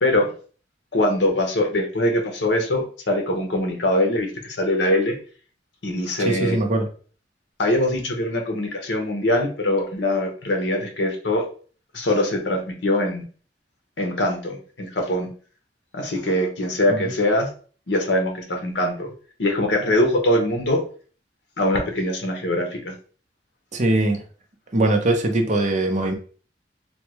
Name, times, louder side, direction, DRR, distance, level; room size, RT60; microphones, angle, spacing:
voice 1, 0.9-5.2 5.8-6.6 7.6-11.4 11.9-13.2 14.0-15.3 15.9-17.5 17.9-19.1 19.4-20.8 21.6-22.9, left 1 dB, 85° left, 3 dB, 0.8 m, -22 dB
voice 2, 6.2-6.9 16.9-17.1 23.7-24.2 24.7-26.1, right 2 dB, 45° right, 4 dB, 0.6 m, -21 dB
3.4 x 2.2 x 3.0 m, 0.41 s
head